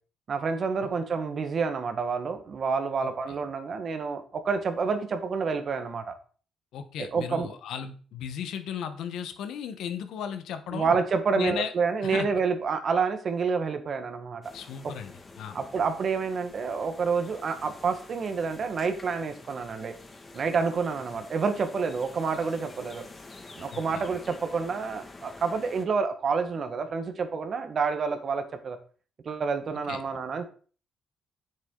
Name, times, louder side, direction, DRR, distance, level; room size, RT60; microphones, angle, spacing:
voice 1, 0.3-6.1 7.0-7.5 10.7-14.4 15.5-19.9 20.3-23.0 23.5-28.8 29.2-30.4, right 5 dB, 50° right, 8 dB, 1.6 m, -28 dB
voice 2, 3.0-3.4 6.7-11.0 11.4-11.7 12.0-12.3 14.5-15.6 23.7-24.0 29.9-30.0, left 8 dB, 80° left, 9 dB, 1.2 m, -36 dB
sound 1, 14.4-25.9, left 3 dB, 30° left, 1.9 m, -48 dB
9.5 x 7.3 x 3.9 m, 0.40 s
cardioid pair, 90°, 0 cm